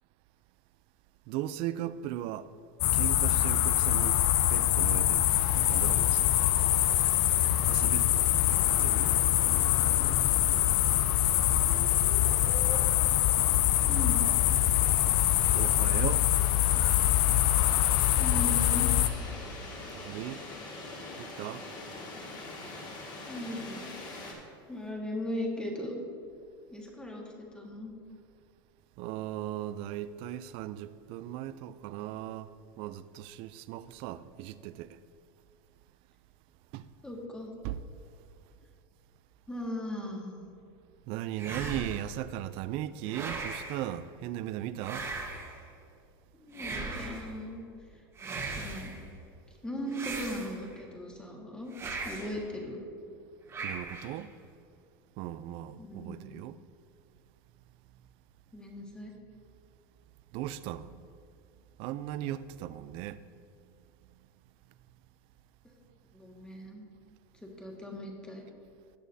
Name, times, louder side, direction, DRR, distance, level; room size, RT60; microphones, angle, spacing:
voice 1, 1.3-2.5 2.9-6.4 7.7-8.3 8.8-9.2 15.5-16.3 19.9-20.4 21.2-21.6 29.0-35.0 36.7-36.9 37.6-37.8 41.1-45.1 53.6-54.4 55.2-56.6 60.3-61.0 61.8-63.2, right 12 dB, 50° right, 0.4 m, -37 dB
sound 1, 2.8-19.1, left 13 dB, 55° left, 0.5 m, -24 dB
sound 2, 5.2-24.3, left 2 dB, 35° left, 1.9 m, -45 dB
voice 2, 11.5-13.0 13.8-14.3 18.1-18.9 23.2-23.9 24.7-26.0 26.7-27.9 37.0-37.5 39.5-40.5 46.3-47.6 48.6-48.9 49.6-51.7 52.0-52.8 55.8-56.4 58.5-59.1 65.6-65.7 66.1-66.9 67.4-68.5, left 1 dB, 5° left, 1.5 m, -38 dB
sound 3, 41.4-42.2 43.1-43.8 44.8-45.6 46.5-47.3 48.2-49.0 49.9-50.8 51.7-52.4 53.5-54.2, right 3 dB, 25° right, 1.4 m, -38 dB
17.5 x 6.2 x 2.7 m
supercardioid pair, 125°, 12 cm